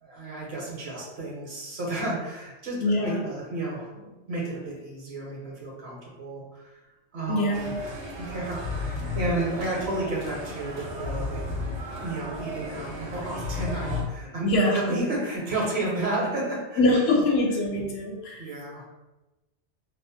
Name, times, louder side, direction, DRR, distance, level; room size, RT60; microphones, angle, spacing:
voice 1, 0.0-6.7 7.1-7.7 8.2-11.4 11.8-17.1 18.4-18.8, right 2 dB, 70° right, -3 dB, 1.0 m, -32 dB
voice 2, 2.8-3.2 7.3-7.8 14.4-15.0 16.8-18.5, left 1 dB, 70° left, -1 dB, 0.8 m, -24 dB
sound 1, 7.5-14.0, left 2 dB, 90° right, 0.9 m, -33 dB
2.5 x 2.0 x 2.7 m, 1.0 s
omnidirectional pair, 1.1 m